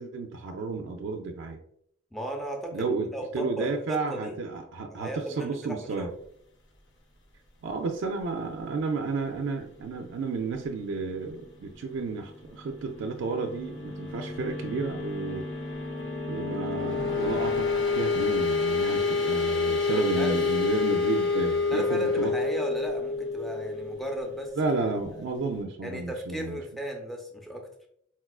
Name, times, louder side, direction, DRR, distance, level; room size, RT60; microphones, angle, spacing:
voice 1, 0.0-1.6 2.7-6.1 7.6-15.5 16.3-22.3 24.6-26.6, right 4 dB, 65° right, 4 dB, 0.3 m, -32 dB
voice 2, 2.1-2.8 3.1-4.4 4.9-6.1 18.8-19.1 19.9-20.4 21.7-24.5 25.1-25.2 25.8-27.7, right 1 dB, ahead, 1 dB, 0.5 m, -35 dB
sound 1, 12.6-25.2, left 4 dB, 65° left, 0.6 m, -29 dB
4.2 x 2.3 x 2.3 m, 0.70 s
head